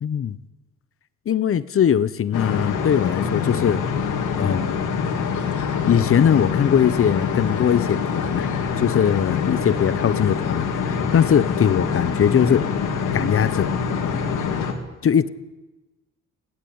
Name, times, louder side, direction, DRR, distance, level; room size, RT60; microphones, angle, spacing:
voice 1, 0.0-0.4 1.3-3.8 4.4-4.8 5.8-8.5 8.8-12.6 13.1-13.7 15.0-15.3, left 8 dB, 45° left, 17 dB, 0.9 m, -20 dB
sound 1, 2.3-14.7, left 6 dB, 80° left, 3.1 m, -25 dB
19.5 x 16.5 x 8.9 m, 1.1 s
cardioid pair, 90°, 30 cm